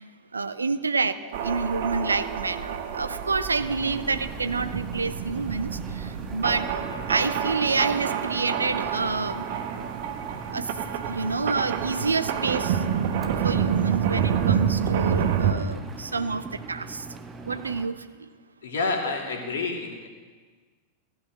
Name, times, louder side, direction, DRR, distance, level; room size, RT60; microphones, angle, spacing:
voice 1, 0.3-1.2 1.4-6.7 7.1-9.4 10.5-10.7 11.1-12.8 13.4-17.0 17.4-18.0, right 4 dB, 75° right, 13 dB, 0.7 m, -28 dB
sound 1, 1.3-15.5, right 8 dB, 55° right, 1.3 m, -28 dB
Engine, 3.6-17.9, right 3 dB, 20° right, 1.6 m, -41 dB
voice 2, 18.6-20.1, left 3 dB, 65° left, 2 dB, 2.6 m, -29 dB
16.0 x 13.0 x 6.3 m, 1.5 s
figure-of-eight pair, 90°, 0 cm